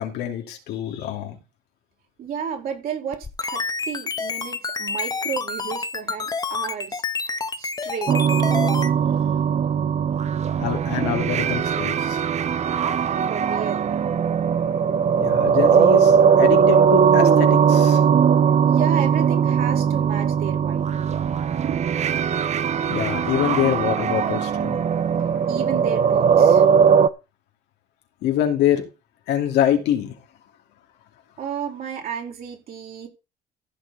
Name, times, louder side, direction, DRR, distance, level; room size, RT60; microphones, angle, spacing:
voice 1, 0.0-1.4 10.6-12.2 15.2-18.0 22.9-24.8 28.2-28.8 29.3-30.1, left 10 dB, 85° left, 2.7 m, -25 dB
voice 2, 2.2-8.1 13.3-13.9 18.6-20.9 25.5-26.6 31.4-33.1, right 8 dB, 60° right, 5.0 m, -32 dB
sound 1, 3.1-8.9, left 4 dB, 20° left, 1.1 m, -28 dB
sound 2, 8.1-27.1, right 7 dB, 40° right, 0.7 m, -19 dB
15.0 x 6.8 x 4.2 m
cardioid pair, 110°, 17 cm